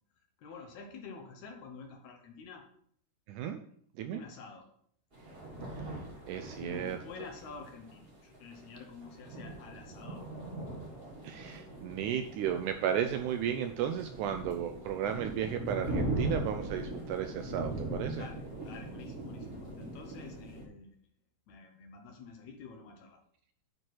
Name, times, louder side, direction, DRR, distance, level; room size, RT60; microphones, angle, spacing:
voice 1, 0.4-2.7 4.1-4.7 6.6-10.3 18.1-20.9 21.5-23.2, left 5 dB, 70° left, 3 dB, 2.0 m, -48 dB
voice 2, 3.3-3.6 4.0-4.2 5.7-7.3 11.2-18.3, right 9 dB, 80° right, 6 dB, 1.8 m, -34 dB
sound 1, 5.1-20.7, right 1 dB, 40° right, 0.8 m, -40 dB
9.2 x 4.5 x 4.6 m, 0.64 s
omnidirectional pair, 3.9 m